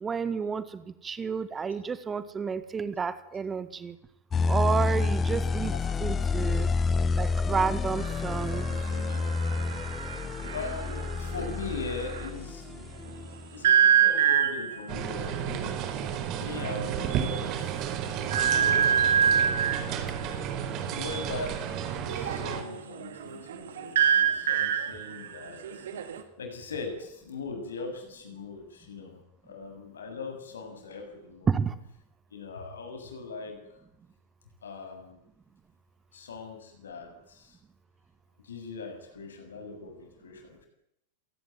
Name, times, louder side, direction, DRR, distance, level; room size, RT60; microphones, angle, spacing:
voice 1, 0.0-4.0 4.5-5.7 6.0-6.7 7.1-8.7 18.3-18.5 31.5-31.7, right 5 dB, 20° right, 14 dB, 1.6 m, -30 dB
sound 1, 4.3-13.5, left 4 dB, 20° left, 1.3 m, -29 dB
sound 2, 8.0-12.4 13.6-14.9 16.0-16.1 16.4-16.7 17.1-17.2 18.3-19.9 22.1-26.2, right 8 dB, 60° right, 2.6 m, -26 dB
voice 2, 10.5-12.6 13.5-15.7 16.4-17.5 18.4-19.3 20.9-21.6 22.1-25.9 26.4-31.5 32.3-33.6 34.6-35.2 36.1-37.6 38.4-40.7, left 4 dB, 70° left, 5 dB, 7.6 m, -40 dB
sound 3, 14.9-22.6, right 8 dB, 40° right, 4.3 m, -32 dB
27.0 x 19.0 x 9.3 m, 0.79 s
figure-of-eight pair, 90°, 0 cm